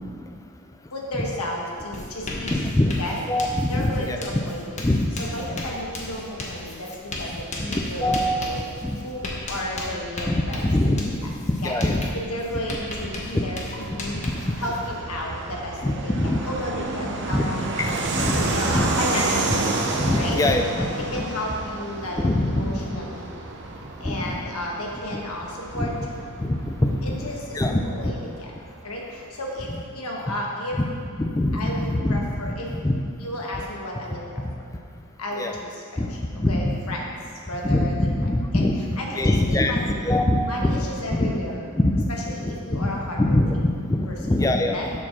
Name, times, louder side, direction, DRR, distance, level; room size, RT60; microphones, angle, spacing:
voice 1, 0.9-2.6 3.0-4.9 5.2-8.6 9.0-10.7 11.6-14.2 14.6-19.6 20.1-20.4 20.8-23.3 24.0-25.9 27.0-28.5 28.8-30.8 31.5-32.7 33.2-34.4 35.2-37.2 37.5-38.7 39.0-40.0 40.4-41.6 42.1-43.7 44.1-44.3 44.7-44.9, left 1 dB, 75° left, -1 dB, 1.3 m, -33 dB
Writing, 1.3-1.5 1.7-14.9, left 1 dB, 30° left, 0.9 m, -36 dB
voice 2, 2.5-2.9 3.3-4.2 4.8-5.1 7.6-8.4 8.8-9.0 10.3-10.4 10.6-12.1 13.3-13.5 14.4-14.5 15.8-16.4 17.3-17.4 17.8-18.9 20.0-20.9 21.1-21.2 22.2-22.8 24.0-24.4 25.7-25.9 26.4-27.2 27.5-28.2 31.2-32.2 32.8-33.0 35.4-35.5 36.0-36.1 36.4-36.7 37.6-38.8 39.2-40.8 41.2-41.3 41.8-42.1 42.7-42.9 43.2-44.8, left 1 dB, 15° left, 4 dB, 0.4 m, -23 dB
Fixed-wing aircraft airplane, 13.0-29.1, right 3 dB, 50° right, 0.7 m, -31 dB
7.2 x 4.4 x 6.0 m, 2.4 s
head